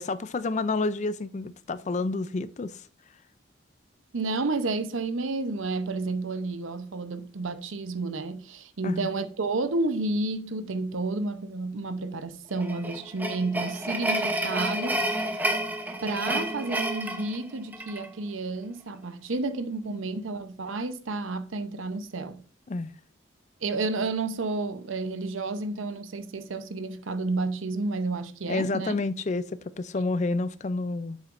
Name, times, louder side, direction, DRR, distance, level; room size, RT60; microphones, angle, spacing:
voice 1, 0.0-2.8 8.8-9.1 22.7-22.9 28.5-31.2, left 3 dB, 35° left, 0.4 m, -29 dB
voice 2, 4.1-15.0 16.0-22.4 23.6-29.0, right 3 dB, 85° right, 0.7 m, -31 dB
sound 1, 12.6-18.1, right 1 dB, 10° right, 0.8 m, -30 dB
8.9 x 7.3 x 2.5 m
head